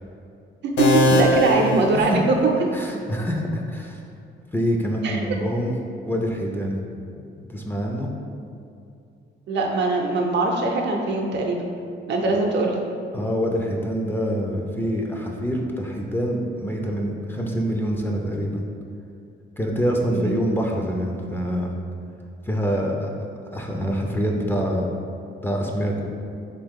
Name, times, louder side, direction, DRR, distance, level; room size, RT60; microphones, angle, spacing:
voice 1, 0.6-2.3 5.0-5.2 9.5-11.6 12.1-12.8 20.1-20.4, right 3 dB, 65° right, 1 dB, 0.6 m, -22 dB
sound 1, 0.8-2.7, left 1 dB, 75° left, 0.5 m, -21 dB
voice 2, 2.7-4.0 4.5-5.7 6.0-6.8 7.5-8.1 12.3-12.4 13.1-18.6 19.6-21.7 22.5-23.1 23.5-24.9 25.4-26.1, equal, 10° left, 0 dB, 0.4 m, -25 dB
3.6 x 3.0 x 3.6 m, 2.5 s
cardioid pair, 90°, 20 cm